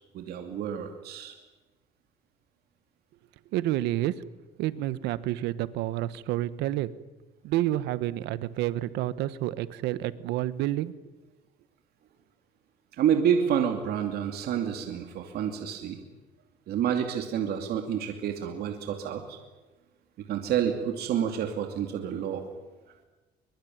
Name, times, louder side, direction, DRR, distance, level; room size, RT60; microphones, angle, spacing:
voice 1, 0.1-1.4 13.0-16.0 16.7-19.4 20.3-22.4, right 8 dB, 70° right, 4 dB, 2.6 m, -28 dB
voice 2, 3.5-4.3 4.6-6.9 7.4-10.9, right 14 dB, 90° right, 15 dB, 1.2 m, -29 dB
22.5 x 22.5 x 9.4 m, 1.2 s
cardioid pair, 110°, 17 cm